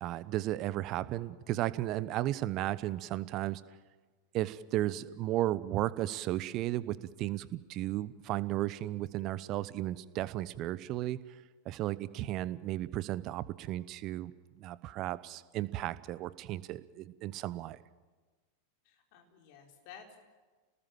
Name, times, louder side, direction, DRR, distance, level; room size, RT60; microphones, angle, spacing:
voice 1, 0.0-3.6 4.3-11.2 11.7-14.3 14.6-17.8, right 15 dB, 35° right, 17 dB, 0.9 m, -34 dB
voice 2, 18.9-20.2, left 7 dB, 45° left, 2 dB, 4.3 m, -53 dB
28.5 x 19.5 x 7.5 m, 1.3 s
figure-of-eight pair, 90°, 0 cm